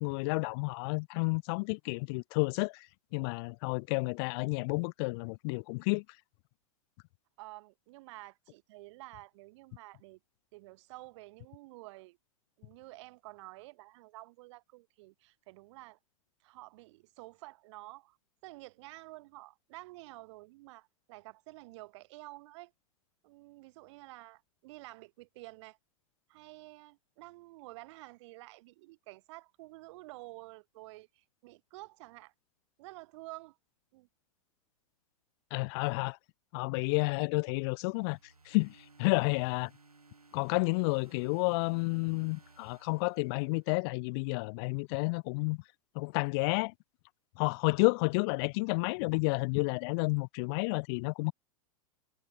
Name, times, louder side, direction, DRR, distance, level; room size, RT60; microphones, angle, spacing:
voice 1, 0.0-2.8 3.1-6.0 35.5-36.2 36.5-38.2 38.5-39.7 40.3-45.6 46.0-46.7 47.4-51.3, left 30 dB, 45° left, 0.7 m, -31 dB
voice 2, 7.4-10.2 10.5-12.2 12.6-16.0 16.4-18.2 18.4-22.7 23.2-25.8 26.3-32.3 32.8-33.6 33.9-34.1, right 21 dB, 50° right, 4.3 m, -50 dB
sound 1, 37.7-43.9, right 3 dB, 90° right, 5.7 m, -60 dB
figure-of-eight pair, 100°, 18 cm